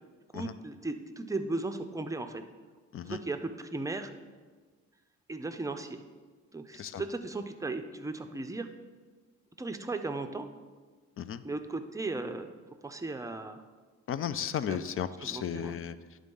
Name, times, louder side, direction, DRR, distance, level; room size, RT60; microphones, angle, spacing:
voice 1, 0.3-2.4 3.0-4.1 5.3-6.0 6.5-8.7 9.6-10.5 11.4-12.5 12.8-13.6 14.7-14.8 15.2-15.7, right 2 dB, 10° right, 7 dB, 0.6 m, -36 dB
voice 2, 14.1-16.0, left 9 dB, 45° left, 13 dB, 0.4 m, -34 dB
10.5 x 3.8 x 5.3 m, 1.4 s
cardioid pair, 90°, 30 cm